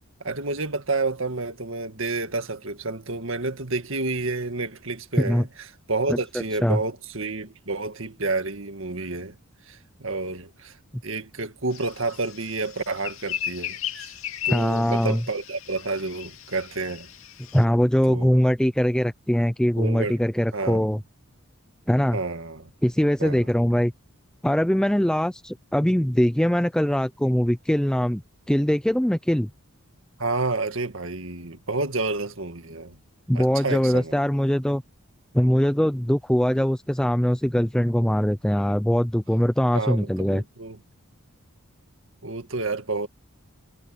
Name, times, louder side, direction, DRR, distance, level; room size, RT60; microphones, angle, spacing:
voice 1, 0.2-5.5 5.9-9.4 9.7-10.8 11.0-14.1 14.4-17.1 18.1-18.4 19.8-20.2 20.5-20.9 22.1-22.7 23.2-23.5 30.2-33.0 33.3-34.1 39.7-40.8 42.2-43.1, right 3 dB, 60° right, 1.9 m, -29 dB
voice 2, 6.1-6.8 14.5-15.2 17.5-21.0 21.9-22.2 22.8-23.9 24.4-28.2 28.5-29.5 33.3-34.8 35.3-40.4, equal, 5° left, 0.4 m, -22 dB
sound 1, 11.7-17.6, left 10 dB, 70° left, 2.6 m, -36 dB
head